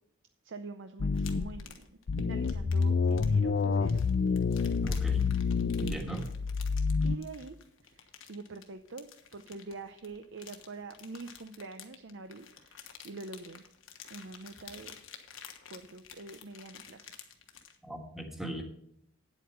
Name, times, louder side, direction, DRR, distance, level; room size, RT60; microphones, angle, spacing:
voice 1, 0.4-4.0 7.0-7.6 7.8-13.6 14.1-15.0 15.7-17.1, right 3 dB, 65° right, 8 dB, 0.6 m, -45 dB
sound 1, 1.0-1.6 2.1-7.2, left 5 dB, 50° left, 0.4 m, -28 dB
sound 2, 1.1-17.8, left 8 dB, 70° left, 1.3 m, -51 dB
voice 2, 4.8-5.3 5.8-6.3 17.8-18.6, right 2 dB, ahead, 3 dB, 1.5 m, -38 dB
9.4 x 8.2 x 5.6 m, 0.70 s
head